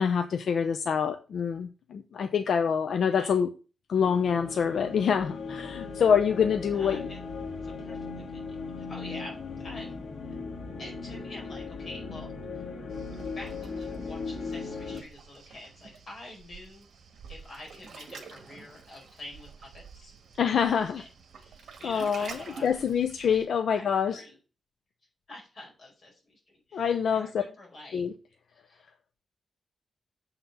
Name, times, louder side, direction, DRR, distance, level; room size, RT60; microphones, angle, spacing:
voice 1, 0.0-3.5 3.9-7.1 20.4-21.0 21.8-22.4 22.6-24.2 26.7-27.4 27.9-28.1, left 7 dB, 75° left, 7 dB, 0.7 m, -26 dB
voice 2, 3.0-3.4 6.7-7.2 7.6-10.4 10.8-12.3 12.5-12.6 13.2-16.8 17.3-20.1 20.6-21.1 21.4-22.8 23.3-23.4 23.7-24.4 25.3-26.4 26.7-28.0 28.6-28.8, left 1 dB, 40° left, -2 dB, 5.0 m, -47 dB
sound 1, 4.0-15.0, left 4 dB, 90° left, 2.1 m, -38 dB
Waves surf, 12.9-23.5, right 5 dB, 75° right, 2.0 m, -48 dB
7.3 x 5.9 x 5.5 m, 0.34 s
wide cardioid pair, 165°, 0 cm